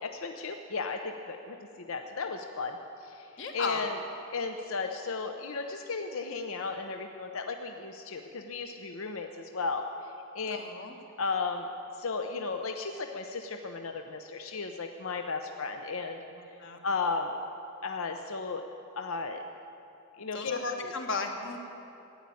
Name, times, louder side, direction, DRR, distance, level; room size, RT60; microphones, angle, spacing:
voice 1, 0.0-3.3 3.5-4.0 4.3-10.6 11.2-11.7 12.0-16.2 16.8-17.3 17.8-18.7 19.0-19.4 20.2-20.9, left 4 dB, 70° left, 5 dB, 0.7 m, -35 dB
voice 2, 3.4-3.8 10.5-10.9 16.6-16.8 20.3-21.6, left 4 dB, 55° left, 3 dB, 1.6 m, -34 dB
15.5 x 10.5 x 8.5 m, 2.8 s
head